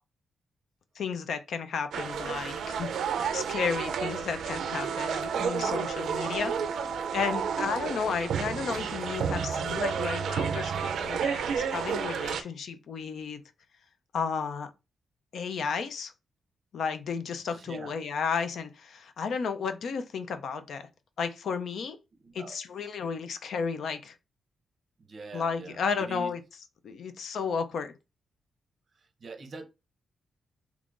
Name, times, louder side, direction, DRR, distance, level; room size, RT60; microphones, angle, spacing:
voice 1, 1.0-2.9 3.3-6.9 7.1-13.4 14.1-14.7 15.3-16.1 16.7-20.9 21.2-22.0 22.3-24.2 25.3-26.4 26.8-27.9, left 5 dB, 60° left, 0.4 m, -33 dB
sound 1, 1.9-12.4, right 7 dB, 85° right, 0.4 m, -31 dB
voice 2, 17.5-17.9 22.2-22.6 25.1-25.8 26.1-26.3 29.2-29.7, right 4 dB, 40° right, 0.6 m, -43 dB
3.6 x 2.9 x 2.5 m
wide cardioid pair, 165°, 0 cm